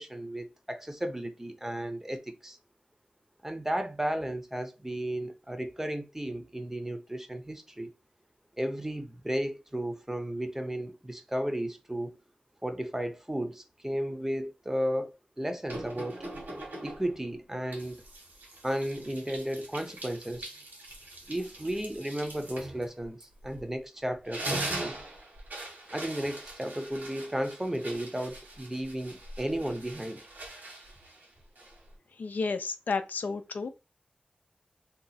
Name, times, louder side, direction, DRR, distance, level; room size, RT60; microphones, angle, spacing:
voice 1, 0.0-2.6 3.4-7.9 8.6-12.2 12.6-16.2 16.8-18.0 18.6-20.6 21.3-24.9 25.9-30.2, right 1 dB, 15° right, 0.6 m, -34 dB
sound 1, 15.7-17.2 17.7-23.8 24.1-31.9, right 1 dB, 80° right, 1.4 m, -41 dB
voice 2, 32.2-33.7, left 4 dB, 80° left, 0.5 m, -31 dB
2.8 x 2.3 x 4.0 m
wide cardioid pair, 65°, 3 cm